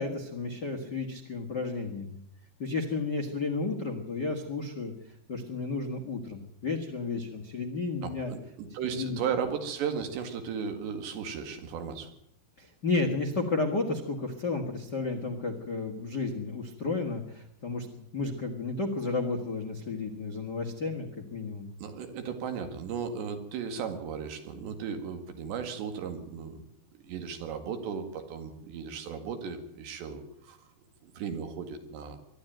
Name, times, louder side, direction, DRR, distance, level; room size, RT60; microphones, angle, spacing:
voice 1, 0.0-2.2 2.6-4.9 5.3-8.3 8.9-9.2 12.6-21.7, left 3 dB, 65° left, 3 dB, 1.0 m, -32 dB
voice 2, 8.0-12.1 21.8-26.6 27.1-30.6 31.0-32.2, right 6 dB, 85° right, 7 dB, 4.3 m, -35 dB
23.0 x 12.5 x 9.1 m, 0.77 s
omnidirectional pair, 4.9 m